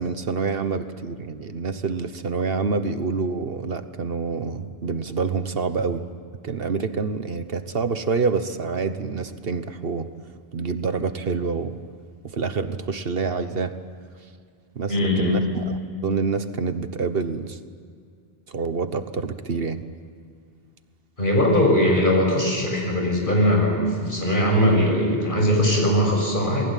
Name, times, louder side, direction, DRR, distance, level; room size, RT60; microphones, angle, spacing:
voice 1, 0.0-6.1 6.4-10.1 10.5-11.8 12.2-13.7 14.7-15.8 16.0-17.6 18.5-19.8, right 4 dB, 65° right, 10 dB, 1.3 m, -27 dB
voice 2, 14.9-15.4 21.2-26.7, equal, 55° left, 0 dB, 6.7 m, -20 dB
28.5 x 20.5 x 9.2 m, 2.2 s
omnidirectional pair, 1.1 m